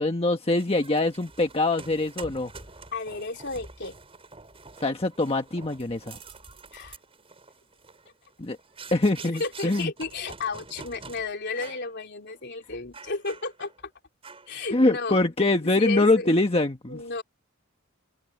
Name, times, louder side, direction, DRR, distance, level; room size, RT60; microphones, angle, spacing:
voice 1, 0.0-2.5 4.8-6.2 8.4-8.6 8.9-9.9 14.7-17.0, left 2 dB, 30° left, 1.4 m, -24 dB
sound 1, 0.6-11.2 11.5-11.9 12.3-12.4 12.9-13.8 14.2-14.6, right 4 dB, 30° right, 5.3 m, -46 dB
voice 2, 2.9-4.0 6.7-7.0 9.4-13.7 14.5-16.3 16.9-17.2, left 3 dB, 55° left, 3.4 m, -33 dB
open air
head